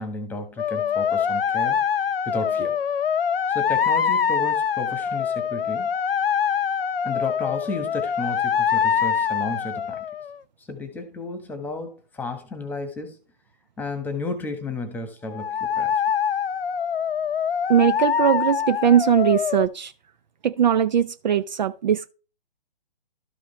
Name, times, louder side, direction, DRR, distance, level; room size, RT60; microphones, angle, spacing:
voice 1, 0.0-2.8 3.5-5.9 7.0-10.0 10.7-13.2 13.8-16.0, left 2 dB, 5° left, 1.4 m, -33 dB
sound 1, 0.6-10.4 15.3-19.7, left 8 dB, 75° left, 0.7 m, -24 dB
voice 2, 17.7-19.9 20.4-22.1, right 9 dB, 50° right, 0.6 m, -20 dB
12.5 x 5.3 x 3.3 m
hypercardioid pair, 140°, 29 cm